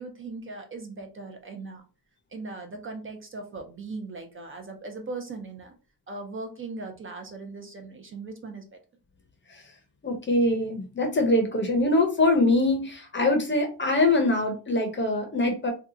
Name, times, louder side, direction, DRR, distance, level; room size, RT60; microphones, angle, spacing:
voice 1, 0.0-1.8 2.3-5.7 6.1-8.6, right 3 dB, 35° right, 4 dB, 0.5 m, -39 dB
voice 2, 10.0-15.7, left 2 dB, 30° left, 4 dB, 0.7 m, -23 dB
2.8 x 2.2 x 3.7 m, 0.34 s
wide cardioid pair, 150°, 36 cm